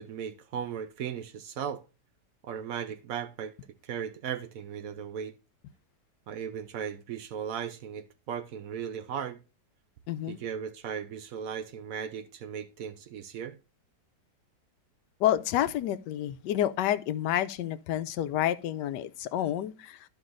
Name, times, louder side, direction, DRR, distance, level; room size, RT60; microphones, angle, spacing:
voice 1, 0.0-1.8 2.4-3.5 3.8-5.3 6.3-9.4 10.3-13.6, right 8 dB, 70° right, 0.9 m, -37 dB
voice 2, 10.1-10.4 15.2-20.1, left 12 dB, 85° left, 1.2 m, -29 dB
13.0 x 5.1 x 2.5 m
omnidirectional pair, 1.8 m